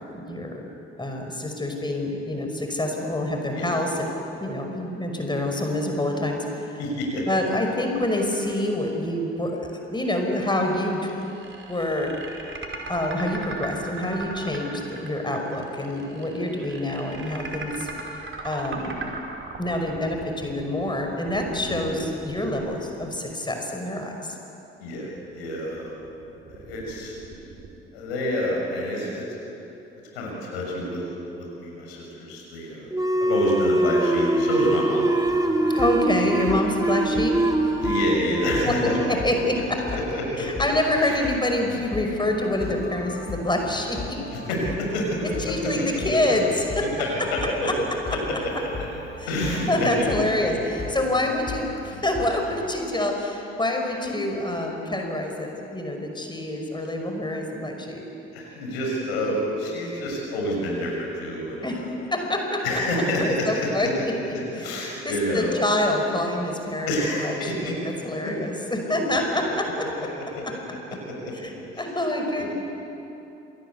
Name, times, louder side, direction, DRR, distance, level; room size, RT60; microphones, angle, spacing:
voice 1, 0.1-0.7 1.0-4.1 4.4-6.4 7.3-11.1 11.5-12.1 12.9-17.9 18.4-19.0 19.6-24.3 35.7-37.4 38.7-39.8 40.4-44.2 45.4-46.9 47.6-47.7 49.7-58.0 61.6-61.8 62.1-62.6 63.2-64.1 64.6-69.9 70.2-71.0 71.4-72.5, left 1 dB, 15° left, 2 dB, 5.7 m, -26 dB
voice 2, 6.8-7.2 21.7-21.9 24.8-25.9 26.5-27.2 27.9-29.2 30.1-31.0 31.3-32.9 33.2-35.1 37.8-39.0 39.9-40.6 41.0-41.1 44.3-45.1 45.4-45.7 47.0-47.7 49.3-50.2 58.3-61.9 62.6-63.9 64.5-65.5 66.9-67.7 68.2-68.3 70.3-70.4 71.7-71.8 72.4-72.5, left 1 dB, 75° left, -2 dB, 6.8 m, -28 dB
sound 1, 7.9-9.0 9.4-9.5 10.7-23.7 25.0-27.7, right 3 dB, 40° right, 5.1 m, -39 dB
sound 2, 32.9-40.1, right 1 dB, 10° right, 2.7 m, -24 dB
sound 3, 35.3-52.6, left 3 dB, 30° left, 6.6 m, -38 dB
28.5 x 24.0 x 8.4 m, 2.9 s
figure-of-eight pair, 45°, 31 cm